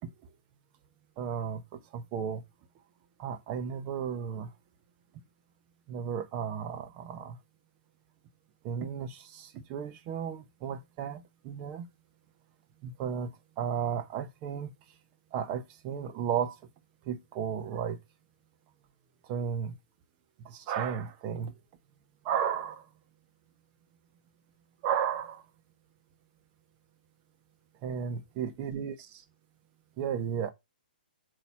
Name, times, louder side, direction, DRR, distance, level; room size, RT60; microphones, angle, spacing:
voice 1, 1.2-2.4 3.2-4.5 5.9-7.4 8.6-11.8 12.8-13.3 13.6-14.7 15.3-16.6 17.1-18.0 19.3-19.7 20.4-21.5 22.2-22.9 24.8-25.4 27.8-29.2 30.0-30.5, right 8 dB, 30° right, 0.9 m, -34 dB
8.2 x 3.0 x 5.7 m
hypercardioid pair, 135°, 5 cm